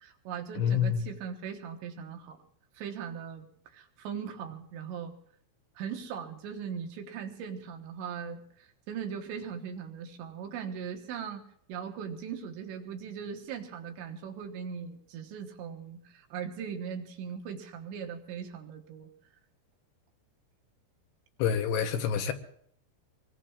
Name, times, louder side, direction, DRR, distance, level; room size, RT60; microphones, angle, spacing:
voice 1, 0.0-2.4 2.7-3.5 3.7-5.1 5.8-11.4 11.7-19.1, right 7 dB, 75° right, 3.4 m, -39 dB
voice 2, 0.6-1.0 21.4-22.3, left 8 dB, 75° left, 2.7 m, -27 dB
26.0 x 21.0 x 2.4 m
omnidirectional pair, 5.4 m